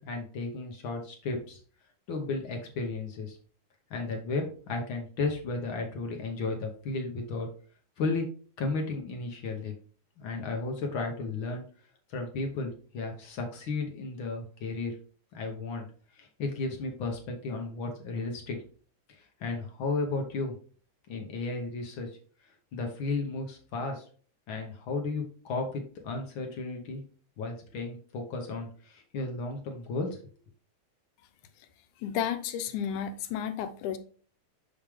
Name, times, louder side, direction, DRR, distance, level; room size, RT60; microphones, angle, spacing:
voice 1, 0.0-1.6 2.1-3.4 3.9-7.5 8.0-8.2 8.6-9.7 10.2-11.6 12.1-14.9 15.3-15.9 16.1-18.6 19.4-20.5 21.1-22.1 22.7-24.0 24.5-27.0 27.4-30.2, left 3 dB, 60° left, 2 dB, 1.4 m, -34 dB
voice 2, 32.0-34.0, left 9 dB, 85° left, 10 dB, 2.2 m, -32 dB
6.3 x 5.1 x 3.5 m, 0.43 s
omnidirectional pair, 3.4 m